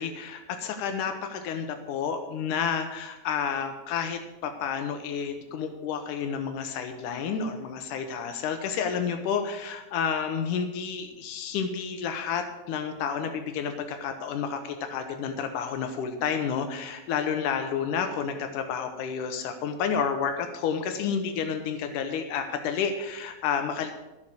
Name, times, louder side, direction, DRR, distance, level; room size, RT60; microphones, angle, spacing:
voice 1, 0.0-23.9, left 7 dB, 85° left, 7 dB, 2.5 m, -30 dB
12.5 x 7.6 x 7.6 m, 1.0 s
omnidirectional pair, 3.5 m